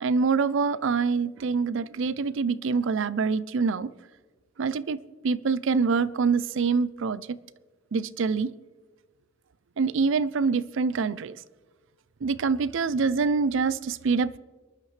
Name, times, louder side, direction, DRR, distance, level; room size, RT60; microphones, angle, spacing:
voice 1, 0.0-3.9 4.6-5.0 5.2-7.4 7.9-8.5 9.8-11.4 12.2-14.4, right 5 dB, 65° right, 0.4 m, -25 dB
24.0 x 11.5 x 3.2 m
head